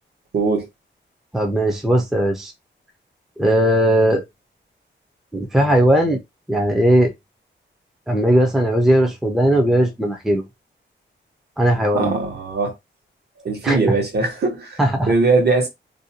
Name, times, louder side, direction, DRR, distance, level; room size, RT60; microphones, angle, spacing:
voice 1, 0.3-0.7 11.9-12.7 13.4-14.8 15.1-15.7, right 3 dB, 55° right, 1.0 m, -20 dB
voice 2, 1.3-2.5 3.4-4.2 5.3-6.2 6.5-7.1 8.1-10.4 11.6-12.1 13.6-13.8 14.8-15.1, right 1 dB, ahead, 0.4 m, -18 dB
2.6 x 2.1 x 2.7 m
wide cardioid pair, 140°, 20 cm